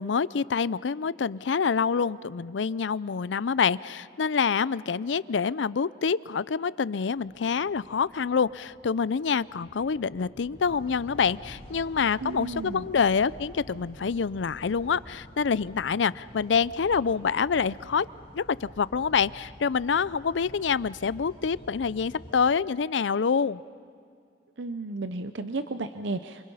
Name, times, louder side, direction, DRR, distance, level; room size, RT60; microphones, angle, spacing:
voice 1, 0.0-18.1 18.3-23.6, left 6 dB, 90° left, 19 dB, 0.5 m, -26 dB
sound 1, 7.1-15.5, equal, 45° right, 6.8 m, -53 dB
sound 2, 10.6-22.4, equal, 30° left, 2.9 m, -49 dB
voice 2, 12.2-12.9 24.6-26.5, right 3 dB, 90° right, 10 dB, 0.8 m, -33 dB
28.5 x 27.0 x 5.6 m, 2.3 s
head